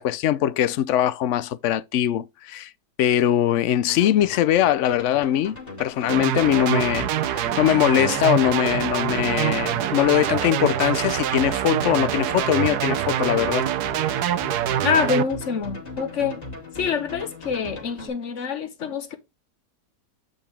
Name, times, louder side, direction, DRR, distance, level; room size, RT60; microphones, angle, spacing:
voice 1, 0.0-2.7 3.0-13.6, left 11 dB, 75° left, 0.6 m, -22 dB
sound 1, 3.9-18.1, left 3 dB, 20° left, 2.7 m, -39 dB
sound 2, 6.1-15.2, right 11 dB, 70° right, 1.2 m, -25 dB
voice 2, 14.8-16.4 16.7-19.2, left 6 dB, 45° left, 1.5 m, -25 dB
8.7 x 5.2 x 3.4 m
omnidirectional pair, 1.8 m